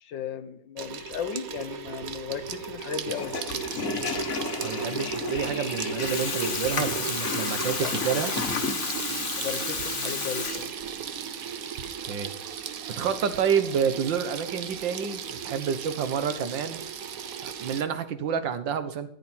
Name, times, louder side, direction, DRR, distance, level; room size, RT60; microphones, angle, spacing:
voice 1, 0.0-3.4 7.8-7.9 9.3-10.7, left 8 dB, 80° left, 11 dB, 1.6 m, -35 dB
Water tap faucet / Sink (filling or washing), 0.8-17.8, right 6 dB, 55° right, 1.2 m, -35 dB
Water tap faucet / Toilet flush, 3.0-11.1, left 5 dB, 45° left, 1.6 m, -31 dB
voice 2, 4.6-8.3 12.1-12.3 13.0-16.8 17.4-19.1, right 7 dB, 75° right, 10 dB, 1.9 m, -29 dB
15.0 x 10.5 x 4.4 m, 0.68 s
omnidirectional pair, 2.0 m